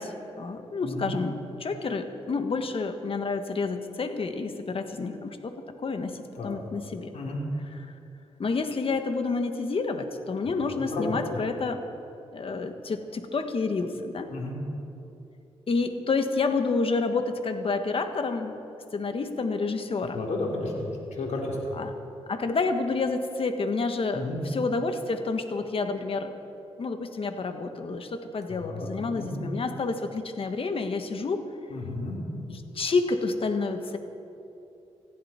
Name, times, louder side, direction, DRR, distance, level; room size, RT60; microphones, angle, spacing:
voice 1, 0.0-7.1 8.4-11.8 12.3-14.3 15.7-18.5 18.9-20.2 21.7-21.9 22.3-26.4 26.8-31.5 32.5-34.0, left 4 dB, 50° left, 7 dB, 1.5 m, -29 dB
voice 2, 10.8-11.2 14.3-14.6 20.1-21.7 24.1-24.4 28.5-28.9 29.1-29.3 31.7-32.2, left 2 dB, 75° left, -2 dB, 3.5 m, -32 dB
19.0 x 15.0 x 4.5 m, 2.8 s
cardioid pair, 65°, 12 cm